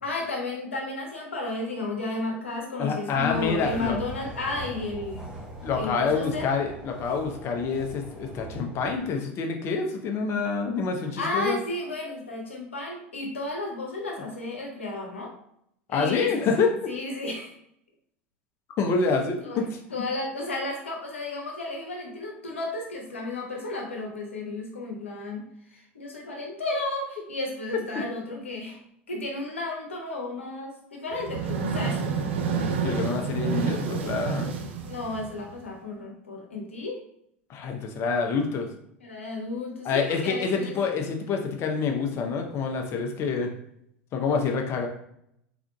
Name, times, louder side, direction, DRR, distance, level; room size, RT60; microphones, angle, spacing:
voice 1, 0.0-5.3 5.7-6.5 11.2-15.3 15.9-16.3 16.9-17.5 19.4-19.6 19.9-25.4 25.7-28.8 29.1-32.9 34.8-37.0 39.0-40.7, left 2 dB, 85° left, 0 dB, 0.9 m, -33 dB
voice 2, 2.8-4.0 5.6-11.6 15.9-16.9 18.8-20.0 32.8-34.5 37.5-38.7 39.8-43.5 44.1-44.9, left 5 dB, 45° left, 3 dB, 0.8 m, -27 dB
sound 1, 3.2-9.1, right 1 dB, 10° right, 1.1 m, -41 dB
sound 2, 31.1-35.7, right 5 dB, 70° right, 0.5 m, -29 dB
3.8 x 3.6 x 2.3 m, 0.74 s
hypercardioid pair, 80°, 7 cm